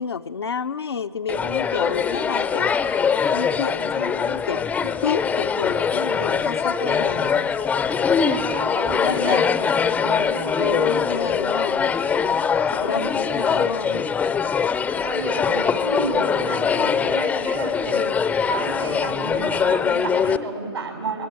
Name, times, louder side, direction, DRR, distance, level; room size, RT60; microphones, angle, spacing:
voice 1, 0.0-7.5 9.0-9.5 10.6-11.9 12.7-14.1, left 6 dB, 70° left, 7 dB, 0.6 m, -29 dB
sound 1, 1.3-20.4, left 6 dB, 10° left, 0.6 m, -22 dB
voice 2, 8.2-10.8 12.7-13.1 15.0-18.1 18.5-21.3, right 3 dB, 75° right, 3 dB, 5.3 m, -31 dB
21.5 x 17.5 x 8.9 m, 2.6 s
figure-of-eight pair, 115°, 14 cm